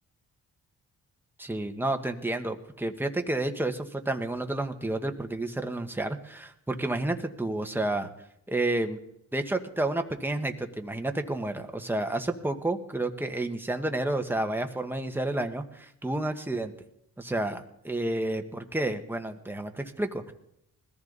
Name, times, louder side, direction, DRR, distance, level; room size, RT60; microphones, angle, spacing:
voice 1, 1.4-8.1 8.5-9.0 9.3-16.7 17.2-20.3, right 2 dB, 5° right, 5 dB, 1.5 m, -30 dB
20.5 x 14.5 x 4.1 m, 0.78 s
cardioid pair, 80°, 34 cm